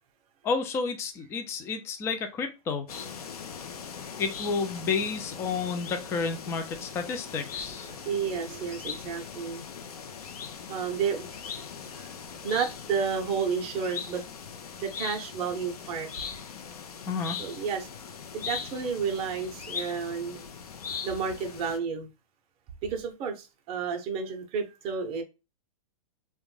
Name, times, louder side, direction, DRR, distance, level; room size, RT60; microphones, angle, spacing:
voice 1, 0.4-2.9 4.2-7.9 17.1-17.4, left 5 dB, 15° left, 6 dB, 0.3 m, -31 dB
sound 1, 2.9-21.8, left 6 dB, 90° left, 0.5 m, -40 dB
voice 2, 7.8-9.6 10.7-11.5 11.9-12.1 12.4-14.2 14.8-16.1 17.4-17.9 18.3-20.4 21.0-22.1 22.8-25.2, right 6 dB, 30° right, 3 dB, 0.6 m, -31 dB
2.5 x 2.1 x 3.1 m, 0.27 s
hypercardioid pair, 130°, 19 cm